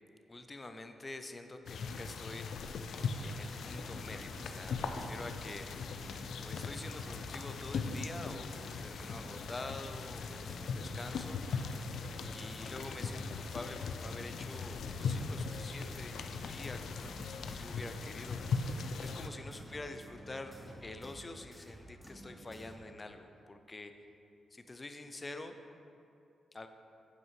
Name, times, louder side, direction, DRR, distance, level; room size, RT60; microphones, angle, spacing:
voice 1, 0.3-2.5 3.2-5.7 6.4-11.4 12.3-18.7 19.0-20.5 20.8-23.9 24.5-25.6 26.5-26.7, left 2 dB, 30° left, 7 dB, 0.6 m, -47 dB
sound 1, 1.7-19.3, left 4 dB, 75° left, 0.5 m, -39 dB
sound 2, 2.9-22.8, equal, ahead, 1.2 m, -52 dB
9.2 x 5.5 x 4.8 m, 2.6 s
cardioid pair, 75°, 0 cm